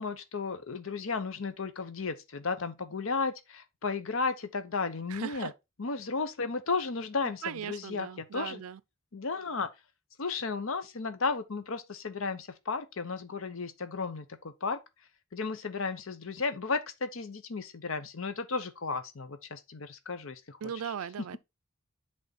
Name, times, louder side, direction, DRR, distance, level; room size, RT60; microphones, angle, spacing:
voice 1, 0.0-5.5 5.8-8.6 9.1-9.7 10.2-14.8 15.3-20.9, left 4 dB, 65° left, 0.8 m, -34 dB
voice 2, 5.1-5.5 7.4-8.8 20.6-21.4, right 8 dB, 85° right, 0.4 m, -38 dB
8.1 x 3.6 x 4.0 m
head